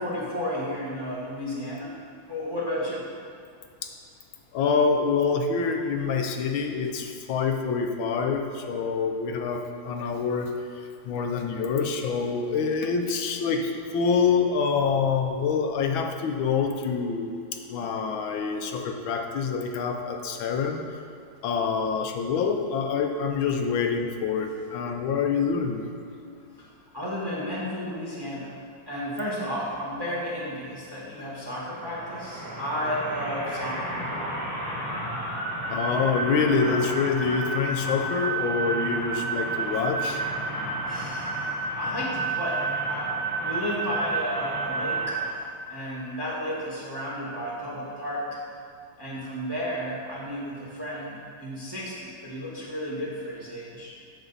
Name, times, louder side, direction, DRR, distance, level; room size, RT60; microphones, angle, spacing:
voice 1, 0.0-1.9 2.3-3.1 26.6-26.7 26.9-28.6 28.9-34.0 40.8-45.2 45.7-48.2 49.0-53.9, equal, 15° right, -5 dB, 1.1 m, -33 dB
voice 2, 4.5-10.5 11.0-17.3 17.7-20.8 21.4-25.8 35.7-40.2, left 5 dB, 85° left, 3 dB, 1.5 m, -26 dB
sound 1, 31.6-45.3, right 3 dB, 70° right, 2.6 m, -31 dB
8.8 x 6.7 x 4.0 m, 2.5 s
omnidirectional pair, 2.1 m